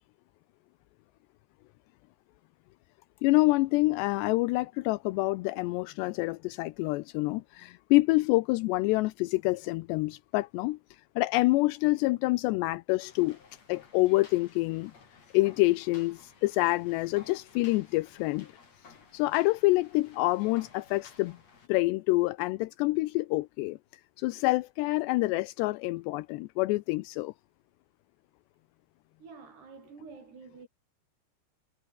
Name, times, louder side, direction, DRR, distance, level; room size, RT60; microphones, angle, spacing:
voice 1, 3.2-10.8 11.2-13.4 13.7-14.9 15.3-18.5 19.1-21.4 21.7-23.8 24.2-27.3, left 21 dB, 85° left, 2.7 m, -27 dB
sound 1, 13.0-21.7, left 5 dB, 40° left, 4.9 m, -56 dB
voice 2, 29.2-30.7, right 4 dB, 65° right, 8.5 m, -48 dB
omnidirectional pair, 5.2 m